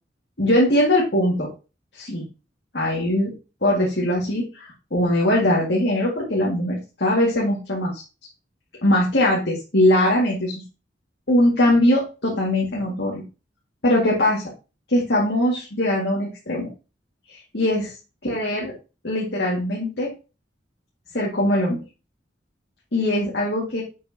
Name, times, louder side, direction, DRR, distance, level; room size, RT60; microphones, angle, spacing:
voice 1, 0.4-1.5 1.9-2.3 2.7-3.3 3.6-8.0 8.8-10.6 11.3-13.2 13.8-14.4 14.9-16.7 17.3-17.9 18.2-18.7 19.0-20.1 21.1-21.8 22.9-23.8, left 1 dB, 65° left, -4 dB, 2.3 m, -21 dB
7.8 x 6.5 x 2.9 m, 0.30 s
head